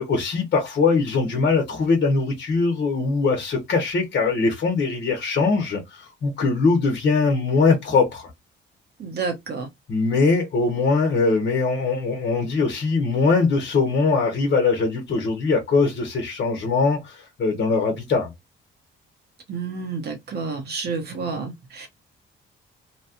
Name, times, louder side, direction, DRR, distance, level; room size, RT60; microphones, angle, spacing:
voice 1, 0.0-8.3 9.9-18.3, left 4 dB, 55° left, 1.1 m, -21 dB
voice 2, 9.0-9.7 19.5-21.9, right 4 dB, 55° right, 1.2 m, -30 dB
3.0 x 2.4 x 2.9 m
cardioid pair, 90°, 20 cm